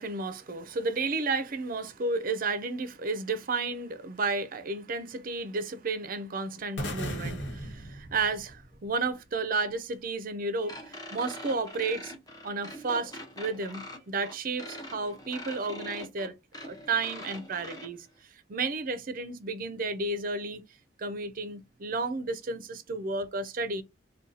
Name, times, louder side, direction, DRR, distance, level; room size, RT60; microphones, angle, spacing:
voice 1, 0.0-12.1 12.4-16.3 16.6-18.1 18.5-20.6 21.0-23.8, right 3 dB, 45° right, 0.5 m, -32 dB
sound 1, 6.8-8.9, equal, 70° left, 1.1 m, -36 dB
sound 2, 10.7-17.9, left 1 dB, 20° left, 0.6 m, -43 dB
2.7 x 2.2 x 3.8 m
head